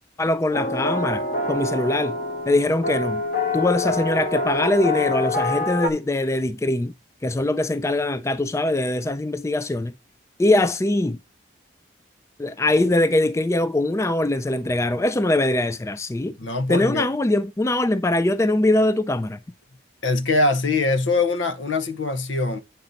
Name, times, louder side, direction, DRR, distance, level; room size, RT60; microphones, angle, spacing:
voice 1, 0.2-2.2 2.5-3.2 3.5-6.9 7.2-9.9 10.4-11.2 12.4-16.4 16.7-19.4, left 1 dB, 15° left, 0.3 m, -22 dB
sound 1, 0.5-5.9, left 2 dB, 45° left, 1.4 m, -26 dB
voice 2, 16.4-17.1 20.0-22.6, left 3 dB, 85° left, 0.9 m, -22 dB
8.9 x 5.3 x 4.0 m
head